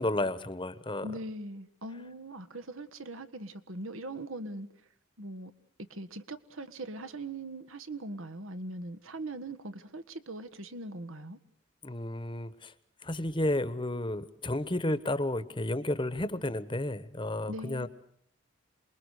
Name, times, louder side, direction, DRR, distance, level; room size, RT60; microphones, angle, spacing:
voice 1, 0.0-1.1 11.8-12.7 13.0-17.9, left 1 dB, 25° left, 1.1 m, -32 dB
voice 2, 1.0-4.7 5.2-5.5 5.9-11.4 17.5-17.9, right 1 dB, 80° right, 1.6 m, -41 dB
28.0 x 22.0 x 6.6 m
head